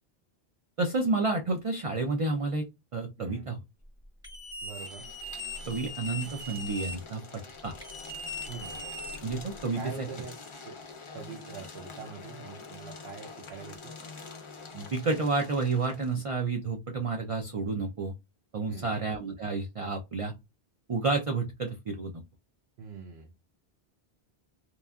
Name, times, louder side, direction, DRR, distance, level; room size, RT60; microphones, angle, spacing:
voice 1, 0.8-2.6 2.9-3.6 5.7-7.8 9.2-10.1 14.7-18.1 18.5-20.3 20.9-22.2, right 3 dB, 60° right, 4 dB, 0.3 m, -30 dB
voice 2, 3.2-3.6 4.6-5.1 8.5-8.8 9.8-10.4 10.6-10.8 11.1-13.9 18.7-19.0 22.8-23.3, right 6 dB, 80° right, 1 dB, 0.9 m, -43 dB
sound 1, 4.2-7.0 7.8-9.6, left 1 dB, 5° right, 0.7 m, -40 dB
sound 2, 4.6-16.2, left 4 dB, 40° left, 0.4 m, -46 dB
3.0 x 2.3 x 2.2 m, 0.22 s
omnidirectional pair, 1.1 m